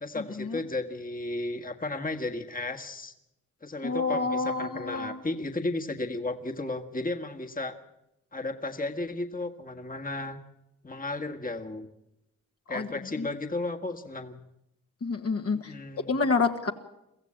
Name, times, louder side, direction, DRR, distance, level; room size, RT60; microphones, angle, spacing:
voice 1, 0.0-3.1 3.6-7.7 8.3-10.4 10.8-11.9 12.7-14.4 15.5-16.1, left 2 dB, 25° left, 4 dB, 1.7 m, -34 dB
voice 2, 3.8-5.2 12.7-12.9 13.2-13.3 15.0-15.7 16.1-16.7, left 4 dB, 45° left, 4 dB, 1.6 m, -28 dB
23.0 x 15.0 x 8.8 m, 0.89 s
cardioid pair, 65°, 32 cm